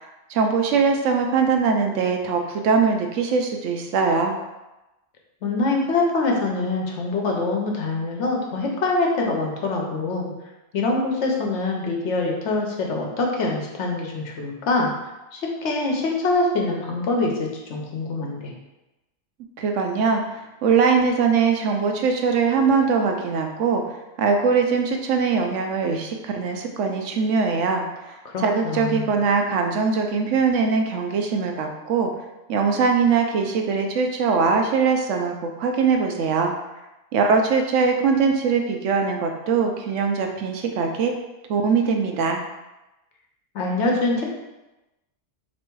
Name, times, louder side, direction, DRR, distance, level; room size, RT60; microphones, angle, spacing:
voice 1, 0.0-4.3 19.6-23.8 24.2-27.8 28.4-32.1 32.5-36.5 37.1-41.1 41.5-42.4, right 5 dB, 75° right, 3 dB, 0.9 m, -21 dB
voice 2, 5.4-10.3 10.7-14.9 15.3-18.5 28.3-29.1 43.5-44.3, left 3 dB, 65° left, 0 dB, 1.1 m, -24 dB
3.4 x 3.1 x 4.5 m, 1.0 s
omnidirectional pair, 1.3 m